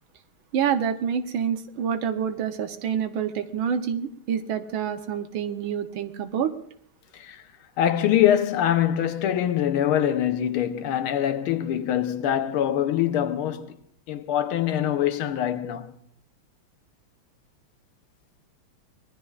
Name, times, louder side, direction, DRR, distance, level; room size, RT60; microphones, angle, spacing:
voice 1, 0.5-6.5, right 8 dB, 70° right, 1.6 m, -27 dB
voice 2, 7.8-13.8 14.1-16.0, left 10 dB, 80° left, 1.7 m, -24 dB
25.0 x 19.5 x 2.4 m
omnidirectional pair, 2.3 m